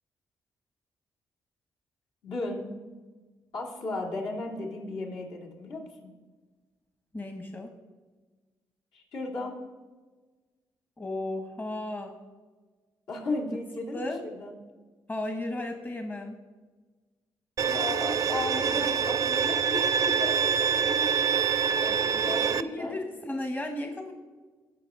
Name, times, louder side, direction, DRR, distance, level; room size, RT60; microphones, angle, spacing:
voice 1, 2.2-2.7 3.5-6.1 8.9-9.6 13.1-14.1 14.4-14.5 17.6-21.1 21.7-22.9, left 2 dB, 75° left, -4 dB, 2.4 m, -35 dB
voice 2, 7.1-7.7 11.0-12.2 13.9-14.3 15.1-16.4 22.6-24.1, left 1 dB, 25° left, 4 dB, 1.0 m, -34 dB
Bowed string instrument, 17.6-22.6, right 7 dB, 45° right, 0.4 m, -25 dB
16.5 x 5.7 x 3.7 m, 1.3 s
cardioid pair, 90°, 8 cm